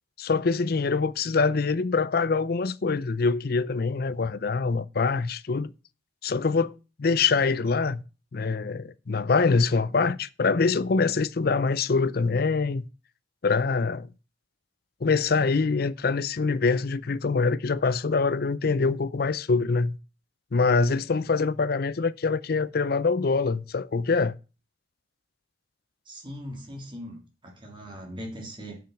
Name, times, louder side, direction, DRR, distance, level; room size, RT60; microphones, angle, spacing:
voice 1, 0.2-5.7 6.2-6.7 7.0-8.0 8.3-12.9 13.4-14.1 15.0-20.0 20.5-24.3, left 4 dB, 55° left, 0.5 m, -24 dB
voice 2, 26.1-28.8, equal, 25° right, 2.9 m, -40 dB
6.9 x 6.3 x 7.1 m
head